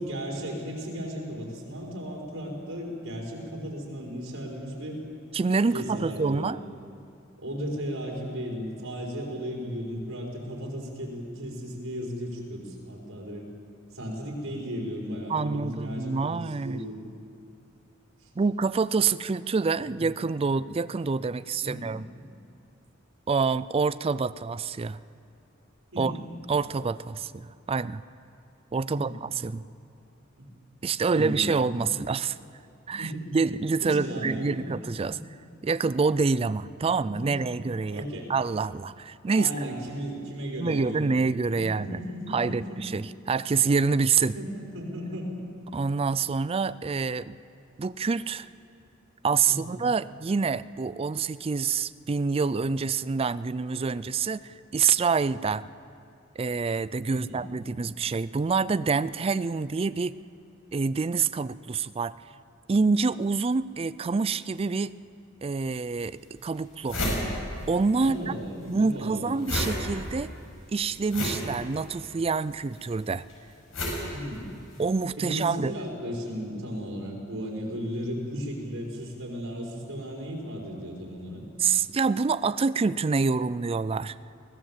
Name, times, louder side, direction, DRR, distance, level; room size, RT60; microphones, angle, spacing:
voice 1, 0.0-5.0 5.7-6.6 7.4-13.5 13.9-17.2 18.2-18.3 19.9-20.1 21.6-22.0 25.9-26.1 28.9-29.2 30.4-30.5 30.9-31.9 33.0-33.3 33.8-34.8 35.0-35.2 37.0-37.3 37.9-38.3 39.3-41.3 41.5-42.8 44.3-45.3 49.5-49.8 57.0-57.5 68.0-69.3 74.1-74.6 75.2-81.4, equal, 85° right, -2 dB, 5.0 m, -35 dB
voice 2, 5.3-6.6 15.3-16.8 18.4-22.1 23.3-25.0 26.0-26.1 26.5-28.0 28.7-29.6 30.8-32.4 32.9-35.2 35.6-38.0 38.3-39.5 40.6-42.0 42.3-44.3 45.7-47.4 47.8-48.5 49.2-55.7 56.4-60.2 60.7-62.2 62.7-64.9 65.4-67.0 67.7-68.2 68.7-70.3 70.7-73.2 74.8-75.7 81.6-84.1, right 4 dB, 30° right, 16 dB, 0.4 m, -26 dB
sound 1, 65.6-65.7 66.3-66.4 66.6-68.1 68.4-74.9, left 1 dB, 80° left, 6.4 m, -32 dB
23.5 x 17.0 x 7.5 m, 2.6 s
head